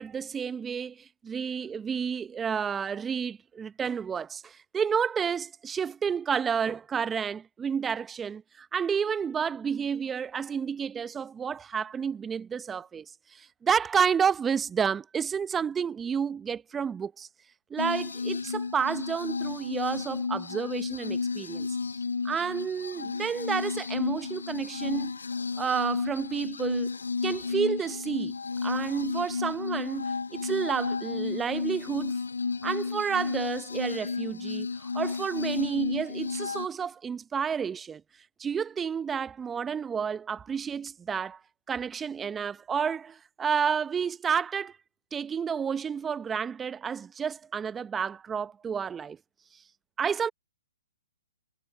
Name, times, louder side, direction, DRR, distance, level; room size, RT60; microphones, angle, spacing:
voice 1, 0.0-13.1 13.3-17.3 17.7-21.8 22.2-25.1 25.6-26.9 27.2-28.4 28.6-32.2 32.6-38.0 38.4-41.4 41.7-44.7 45.1-49.2 50.0-50.3, right 7 dB, 15° right, 0.7 m, -30 dB
sound 1, 17.8-36.7, left 4 dB, 85° left, 0.4 m, -32 dB
hypercardioid pair, 130°, 0 cm